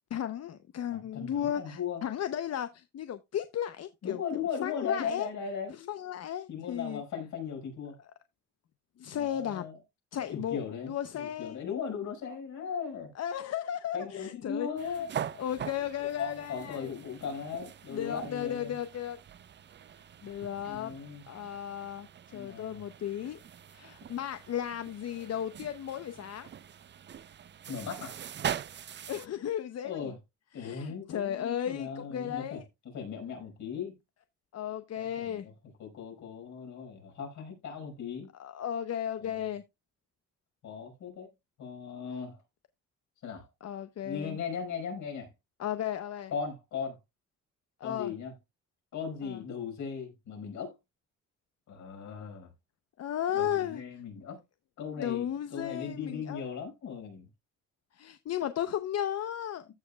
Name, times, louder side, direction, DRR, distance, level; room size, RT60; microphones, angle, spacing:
voice 1, 0.1-4.2 4.6-5.3 5.9-7.0 9.0-9.6 10.1-11.6 13.2-15.0 15.4-16.9 17.9-19.2 20.2-20.9 21.3-23.4 23.7-26.5 29.1-30.2 30.5-32.6 34.5-35.4 38.4-39.6 43.6-44.4 45.6-46.3 47.8-48.1 49.2-49.4 53.0-53.8 55.0-56.4 57.9-59.7, left 10 dB, 55° left, 0.8 m, -35 dB
voice 2, 0.9-2.0 4.0-5.9 6.5-8.0 9.1-9.8 10.3-13.1 13.9-15.1 16.0-18.8 20.7-21.2 22.3-22.8 27.7-28.2 29.8-30.2 30.5-34.0 35.0-35.5 35.8-38.3 39.2-39.4 40.6-41.3 41.6-42.4 43.2-43.5 44.0-45.3 46.3-47.0 47.8-48.3 48.9-50.7 51.7-52.5 53.3-54.4 54.8-57.3, left 6 dB, 75° left, 5.0 m, -38 dB
sound 1, 14.8-29.3, right 9 dB, 35° right, 0.5 m, -43 dB
15.0 x 5.2 x 2.3 m
cardioid pair, 90°, 30 cm